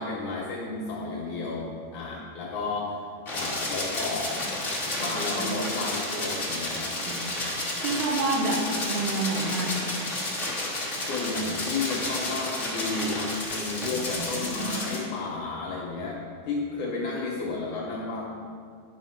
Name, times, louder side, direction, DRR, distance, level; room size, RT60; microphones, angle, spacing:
voice 1, 0.0-3.0 3.3-4.3 5.0-6.9 11.0-18.3, left 3 dB, 70° left, -3 dB, 2.0 m, -32 dB
sound 1, 3.3-15.0, left 2 dB, 35° left, 0.8 m, -31 dB
voice 2, 7.8-10.0 13.9-14.8, right 2 dB, 85° right, 2 dB, 3.1 m, -29 dB
11.0 x 5.7 x 5.8 m, 2.2 s
omnidirectional pair, 4.6 m